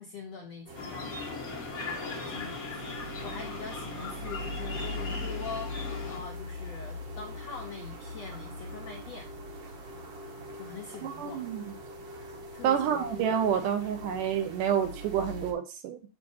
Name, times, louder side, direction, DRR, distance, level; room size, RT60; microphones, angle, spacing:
voice 1, 0.0-1.4 2.0-9.3 10.5-11.4 12.5-13.2, left 5 dB, 75° left, 1.5 m, -43 dB
sound 1, 0.7-6.2, left 4 dB, 60° left, 0.9 m, -39 dB
sound 2, 0.7-15.5, left 1 dB, 55° right, 1.8 m, -41 dB
voice 2, 11.0-11.6 12.6-16.0, right 8 dB, 75° right, 2.2 m, -28 dB
7.3 x 7.0 x 2.7 m
omnidirectional pair, 4.0 m